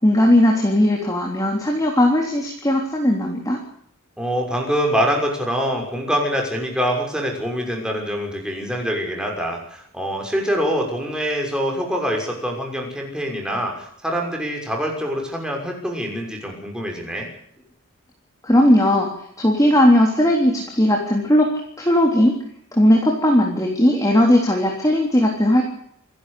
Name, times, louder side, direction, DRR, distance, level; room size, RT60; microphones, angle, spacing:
voice 1, 0.0-3.6 18.4-19.1 19.4-21.5 21.8-22.4 22.7-25.6, left 1 dB, 15° left, 0 dB, 3.5 m, -17 dB
voice 2, 4.2-17.3, equal, 5° right, 1 dB, 6.2 m, -24 dB
27.5 x 12.0 x 8.5 m, 0.68 s
head